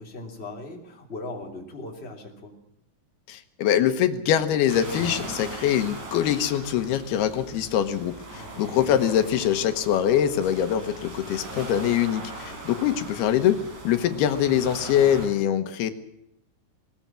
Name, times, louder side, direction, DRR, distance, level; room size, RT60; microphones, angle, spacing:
voice 1, 0.0-2.5 8.3-8.7 12.4-12.6, left 2 dB, 15° left, 1 dB, 3.2 m, -39 dB
voice 2, 3.3-15.9, left 10 dB, 85° left, 8 dB, 3.2 m, -23 dB
sound 1, 4.7-15.3, right 2 dB, 50° right, 6.0 m, -39 dB
20.5 x 20.0 x 7.6 m, 0.79 s
omnidirectional pair, 4.4 m